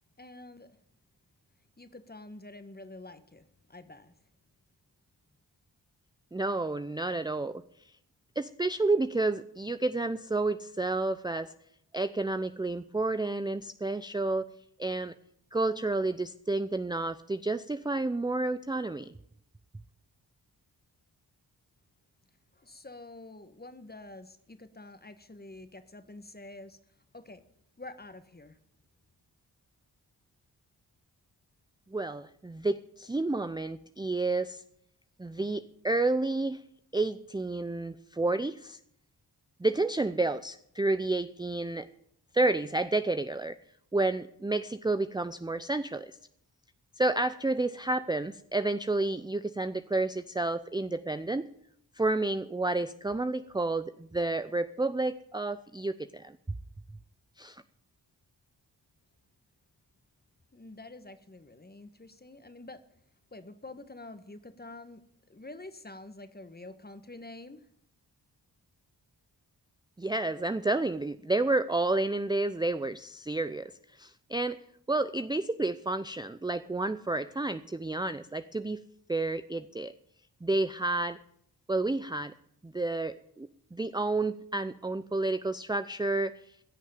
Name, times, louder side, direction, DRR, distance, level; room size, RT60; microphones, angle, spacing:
voice 1, 0.2-0.8 1.8-4.1 22.5-26.8 27.1-27.4 27.8-28.6 60.5-62.8 63.3-67.7, left 2 dB, 20° left, 1.5 m, -47 dB
voice 2, 6.3-7.9 8.4-11.5 11.9-14.5 14.8-15.1 15.5-19.1 31.9-34.6 35.2-36.6 36.9-38.8 39.6-41.9 42.3-43.6 43.9-46.2 47.0-51.5 51.9-56.6 57.4-57.6 70.0-74.6 74.9-78.8 79.1-79.9 80.4-81.2 81.7-82.3 82.6-86.6, right 2 dB, 10° right, 0.6 m, -30 dB
16.0 x 6.4 x 9.3 m
supercardioid pair, 40°, 43 cm